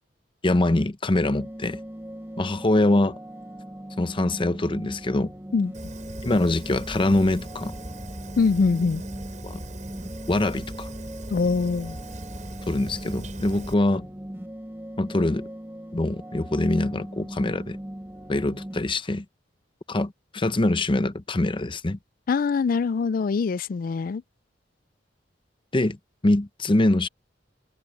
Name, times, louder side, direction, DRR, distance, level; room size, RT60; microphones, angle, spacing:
voice 1, 0.4-1.8 2.4-3.2 4.0-5.3 6.2-7.7 9.4-9.6 10.3-10.9 12.7-14.1 15.0-15.5 15.9-17.8 18.3-19.2 19.9-22.0 25.7-26.0 26.2-27.1, left 2 dB, 30° left, 0.7 m, -24 dB
sound 1, 1.4-18.8, right 1 dB, 15° right, 1.9 m, -40 dB
Fire, 5.7-13.7, right 1 dB, 45° right, 5.8 m, -39 dB
voice 2, 8.4-9.0 11.3-12.0 22.3-24.2, left 4 dB, 50° left, 0.4 m, -23 dB
head